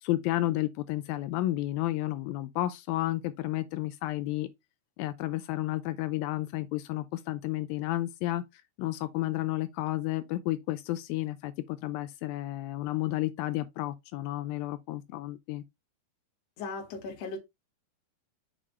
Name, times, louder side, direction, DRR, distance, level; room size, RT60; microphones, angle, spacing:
voice 1, 0.0-4.5 5.0-15.6, left 16 dB, 85° left, 2.4 m, -32 dB
voice 2, 16.6-17.4, left 3 dB, 55° left, 2.3 m, -37 dB
7.2 x 4.9 x 3.3 m
omnidirectional pair, 4.2 m